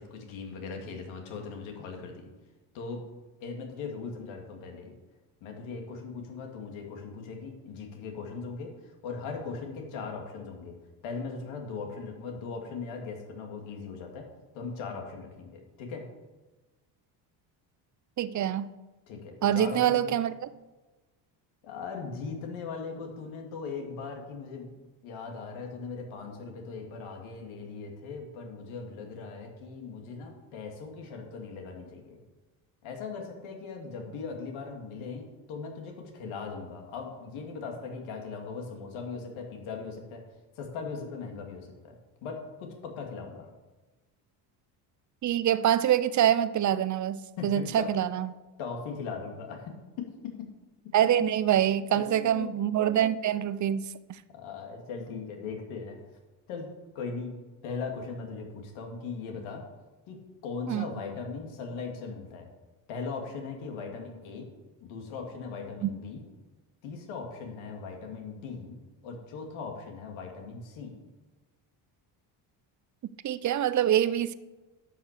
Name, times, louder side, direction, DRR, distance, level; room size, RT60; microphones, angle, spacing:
voice 1, 0.0-2.3 2.7-3.0 3.4-4.9 5.4-10.7 11.0-14.3 14.5-16.0 19.1-20.2 21.6-24.7 25.0-32.2 32.8-40.2 40.6-43.5 47.4-47.9 48.6-50.5 51.9-52.6 54.3-56.0 56.5-56.7 56.9-57.3 57.6-59.6 60.1-62.5 62.9-64.5 64.8-66.2 66.8-68.8 69.0-70.9, left 5 dB, 80° left, 2 dB, 2.6 m, -39 dB
voice 2, 18.2-18.7 19.4-20.3 45.2-48.3 50.9-53.9 60.7-60.8 65.8-65.9 73.2-74.3, right 10 dB, 40° right, 15 dB, 0.6 m, -25 dB
11.5 x 6.1 x 6.7 m, 1.2 s
cardioid pair, 100°, 47 cm